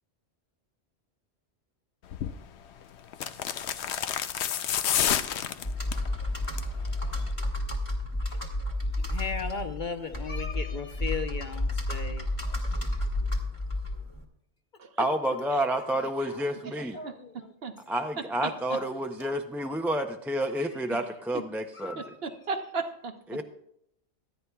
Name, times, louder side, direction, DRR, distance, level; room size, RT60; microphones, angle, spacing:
sound 1, 2.1-2.4 3.1-6.1 6.4-6.8 7.1-7.2, left 9 dB, 80° left, 0.9 m, -29 dB
Computer keyboard, 5.6-14.2, left 1 dB, 30° left, 1.4 m, -31 dB
voice 1, 8.7-12.9 16.2-17.5 18.7-18.9 19.2-20.1 20.5-20.9 21.7-22.1, left 5 dB, 50° left, 6 dB, 0.9 m, -38 dB
voice 2, 15.0-17.0 17.9-22.0 23.3-23.4, right 1 dB, ahead, 4 dB, 0.4 m, -29 dB
voice 3, 16.6-17.7 18.2-18.8 20.6-21.0 21.3-21.4 22.0-23.4, right 4 dB, 65° right, 7 dB, 1.1 m, -37 dB
24.5 x 9.8 x 2.3 m, 0.77 s
omnidirectional pair, 1.1 m